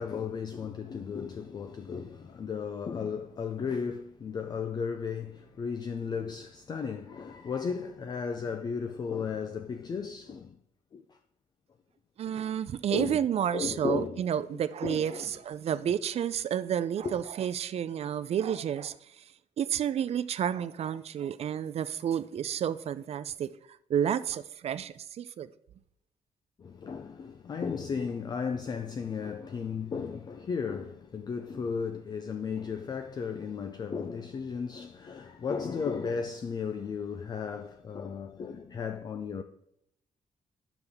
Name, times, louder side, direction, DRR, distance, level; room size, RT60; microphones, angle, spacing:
voice 1, 0.0-10.6 10.9-11.2 12.9-13.2 13.5-14.2 14.5-15.3 17.0-17.2 26.6-39.4, left 6 dB, 30° left, 0.4 m, -35 dB
voice 2, 12.2-18.9 19.6-23.5 23.9-25.5, right 9 dB, 45° right, 0.4 m, -30 dB
9.7 x 6.9 x 3.5 m
wide cardioid pair, 170°, 14 cm